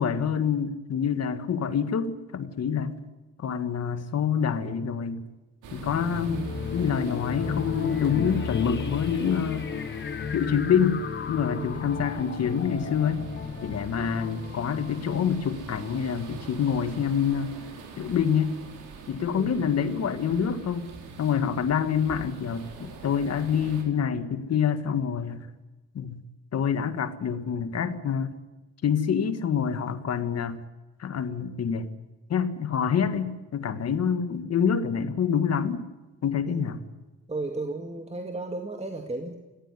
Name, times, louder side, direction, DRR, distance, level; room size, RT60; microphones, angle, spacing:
voice 1, 0.0-2.9 3.4-5.2 5.7-6.4 6.7-9.8 10.3-11.0 11.3-13.2 13.6-17.6 18.0-18.5 19.1-20.9 21.2-25.5 25.9-26.2 26.5-28.3 28.8-30.6 31.0-31.9 32.3-35.8 36.2-36.8, left 7 dB, 55° left, 11 dB, 1.7 m, -26 dB
sound 1, 5.6-23.8, right 4 dB, 90° right, 4.1 m, -44 dB
sound 2, 5.8-16.1, left 6 dB, 35° left, 1.1 m, -34 dB
voice 2, 11.5-11.8 19.3-19.7 36.5-36.7 37.3-39.4, right 2 dB, 20° right, 4 dB, 2.2 m, -34 dB
19.5 x 17.0 x 9.7 m, 1.2 s
cardioid pair, 90°, 30 cm